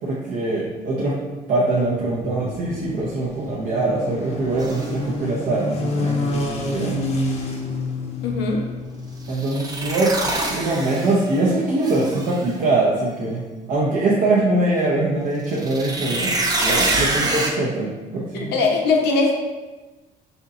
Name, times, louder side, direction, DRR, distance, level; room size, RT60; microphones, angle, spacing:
voice 1, 0.0-1.2 1.5-7.0 9.3-16.3 16.6-18.5, right 2 dB, 60° right, -6 dB, 0.7 m, -23 dB
sound 1, 1.9-9.4, left 2 dB, 40° left, 0.6 m, -28 dB
sound 2, 4.6-4.9 9.3-11.4 11.8-12.5 15.5-17.5, right 2 dB, 20° right, 0.5 m, -25 dB
voice 2, 8.2-8.6 18.3-19.3, left 3 dB, 85° left, 0 dB, 0.7 m, -20 dB
4.3 x 2.8 x 2.4 m, 1.2 s
cardioid pair, 110°, 17 cm